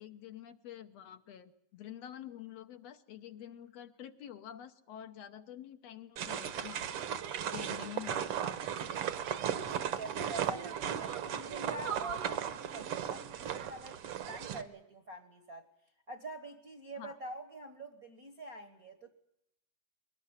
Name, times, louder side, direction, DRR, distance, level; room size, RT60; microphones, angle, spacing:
voice 1, 0.0-7.2 7.5-8.7 17.0-17.2, left 10 dB, 65° left, 8 dB, 2.0 m, -48 dB
sound 1, 6.2-14.6, right 9 dB, 60° right, 1.8 m, -36 dB
voice 2, 9.7-15.6 16.1-19.1, right 2 dB, 45° right, 8 dB, 1.3 m, -46 dB
22.0 x 18.0 x 9.6 m, 0.79 s
omnidirectional pair, 3.4 m